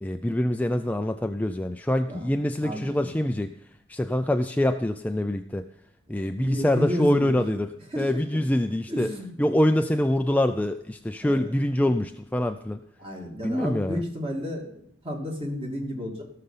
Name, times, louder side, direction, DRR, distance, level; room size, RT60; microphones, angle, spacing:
voice 1, 0.0-3.5 3.9-5.6 6.1-7.7 8.0-9.1 9.4-12.8 13.4-14.0, left 1 dB, 10° left, 6 dB, 0.4 m, -25 dB
voice 2, 2.6-3.1 6.1-7.4 7.9-8.1 8.9-9.3 11.2-11.4 13.0-16.2, equal, 25° right, 0 dB, 2.4 m, -32 dB
16.5 x 6.7 x 5.7 m, 0.72 s
head